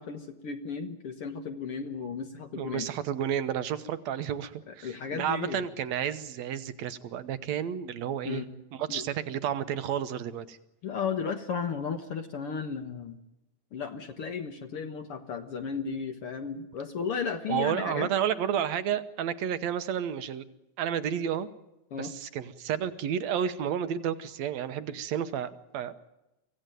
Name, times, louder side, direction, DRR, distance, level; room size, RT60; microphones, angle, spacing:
voice 1, 0.0-2.9 4.7-5.6 8.3-8.5 8.9-9.1 10.8-13.2 13.7-18.1 21.9-22.1, left 6 dB, 55° left, 6 dB, 2.0 m, -34 dB
voice 2, 2.6-8.4 8.8-10.6 17.5-20.4 20.8-21.5 22.0-25.9, right 9 dB, 70° right, 12 dB, 2.3 m, -31 dB
25.0 x 16.0 x 9.2 m, 0.94 s
omnidirectional pair, 3.3 m